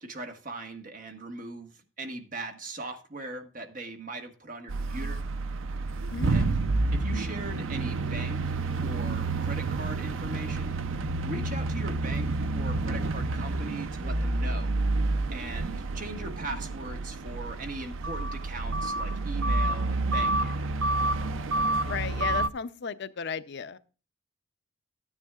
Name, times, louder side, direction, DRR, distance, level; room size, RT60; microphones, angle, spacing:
voice 1, 0.0-5.2 6.3-6.6 6.9-10.8 11.2-14.8 15.3-20.5, right 2 dB, 40° right, 1.4 m, -39 dB
sound 1, 4.7-22.5, right 2 dB, 65° right, 0.5 m, -29 dB
voice 2, 6.1-6.5 21.7-23.8, left 6 dB, 55° left, 0.5 m, -35 dB
13.0 x 9.9 x 2.4 m
head